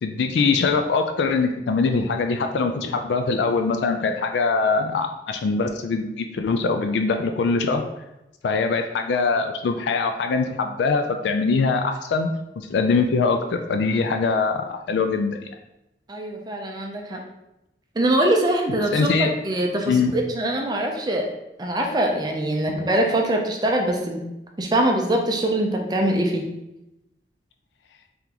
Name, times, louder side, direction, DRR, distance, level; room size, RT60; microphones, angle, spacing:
voice 1, 0.0-7.9 8.4-12.3 12.6-15.4 18.9-19.3 19.9-20.1 22.7-22.9, left 4 dB, 80° left, 5 dB, 0.3 m, -22 dB
voice 2, 16.1-17.2 18.0-21.3 21.6-24.2 24.6-26.5, right 1 dB, 25° right, 2 dB, 0.4 m, -23 dB
3.8 x 3.4 x 2.9 m, 0.92 s
head